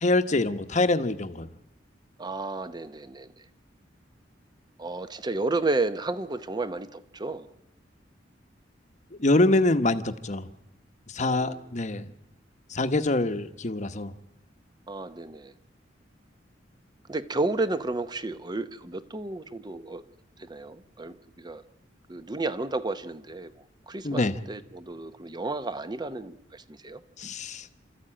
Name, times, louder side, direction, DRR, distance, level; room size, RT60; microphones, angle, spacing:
voice 1, 0.0-1.5 9.2-10.5 11.1-12.1 12.7-14.1 24.0-24.3 27.2-27.7, left 2 dB, 40° left, 1.0 m, -25 dB
voice 2, 2.2-3.4 4.8-7.5 11.2-11.7 14.9-15.5 17.1-20.0 20.4-21.6 22.1-27.0, right 2 dB, 25° right, 0.8 m, -32 dB
29.0 x 14.0 x 8.8 m
head